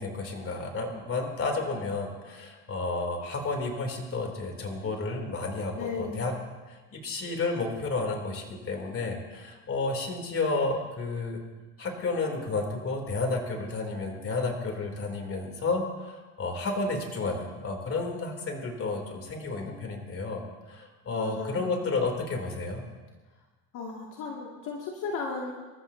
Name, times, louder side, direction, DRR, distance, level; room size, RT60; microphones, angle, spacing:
voice 1, 0.0-6.3 6.7-11.5 11.8-22.9, left 3 dB, 35° left, 2 dB, 3.5 m, -31 dB
voice 2, 5.7-6.3 21.1-21.7 23.7-25.5, left 4 dB, 55° left, -2 dB, 2.7 m, -35 dB
27.5 x 14.0 x 2.9 m, 1.3 s
supercardioid pair, 100°, 38 cm